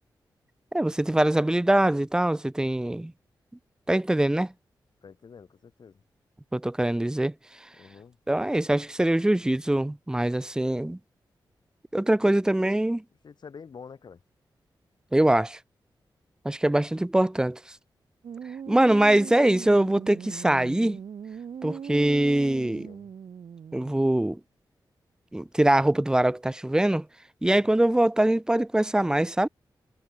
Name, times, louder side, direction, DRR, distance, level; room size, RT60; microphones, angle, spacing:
voice 1, 0.7-3.1 3.9-4.5 6.5-7.3 8.3-11.0 11.9-13.0 15.1-15.6 16.4-17.6 18.7-21.0 21.6-22.9 23.7-24.4 25.3-27.1 27.4-29.5, right 1 dB, 10° right, 0.5 m, -23 dB
voice 2, 5.0-6.0 7.7-8.2 12.2-12.4 13.2-14.2 22.5-23.1, left 6 dB, 65° left, 7.1 m, -47 dB
sound 1, 18.2-24.1, right 7 dB, 80° right, 2.1 m, -40 dB
cardioid pair, 85°, 8 cm